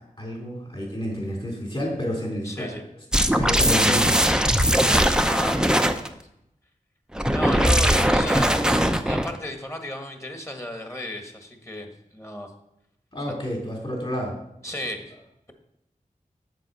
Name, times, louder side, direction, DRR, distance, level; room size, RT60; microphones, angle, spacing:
voice 1, 0.2-2.7 3.3-4.2 13.1-14.4, equal, 40° left, -1 dB, 3.9 m, -29 dB
voice 2, 2.4-2.8 5.2-5.8 7.3-8.6 9.0-12.5 14.6-15.0, left 1 dB, 20° left, 4 dB, 1.6 m, -33 dB
sound 1, 3.1-6.1 7.1-9.4, equal, 5° right, 0.6 m, -20 dB
7.7 x 7.1 x 5.6 m, 0.81 s
wide cardioid pair, 60°, 14 cm